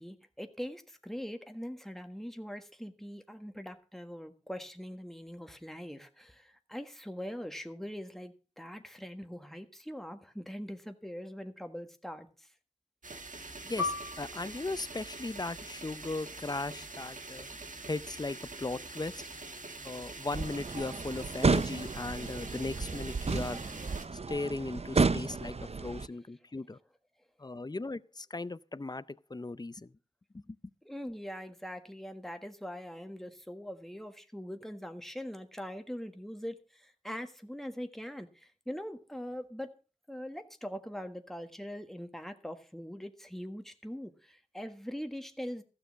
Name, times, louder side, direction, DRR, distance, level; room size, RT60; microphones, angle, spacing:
voice 1, 0.0-12.5 30.8-39.7 40.1-45.6, equal, ahead, 1.5 m, -42 dB
sound 1, 13.0-24.0, right 3 dB, 80° right, 1.3 m, -45 dB
voice 2, 13.6-17.5 17.9-19.2 19.8-23.6 24.3-25.5 25.8-26.8 27.4-29.9 30.3-30.6, left 2 dB, 30° left, 0.5 m, -37 dB
Piano, 13.8-18.8 19.2-19.3 20.1-20.5, left 3 dB, 20° right, 1.8 m, -41 dB
sound 2, 20.3-26.1, right 4 dB, 50° right, 0.5 m, -32 dB
15.0 x 6.8 x 6.2 m
wide cardioid pair, 55°, 13 cm